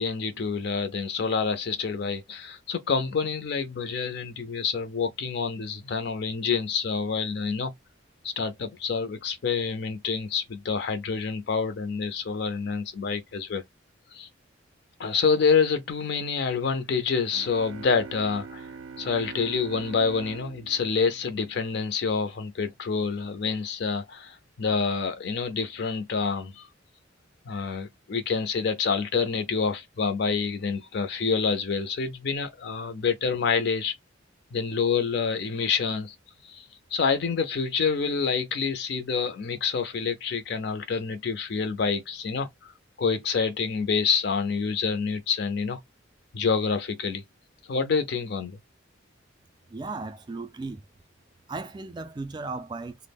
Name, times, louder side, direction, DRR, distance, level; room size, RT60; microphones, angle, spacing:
voice 1, 0.0-7.7 8.2-13.6 14.1-14.3 15.0-18.7 19.0-26.7 27.5-33.9 34.5-36.1 36.4-42.7 43.0-45.8 46.3-47.2 47.7-48.6, left 5 dB, 55° left, 0.4 m, -27 dB
sound 1, 17.3-22.0, right 5 dB, 90° right, 0.5 m, -43 dB
voice 2, 49.7-50.8 51.5-53.0, right 3 dB, 20° right, 0.3 m, -36 dB
2.2 x 2.0 x 3.3 m
head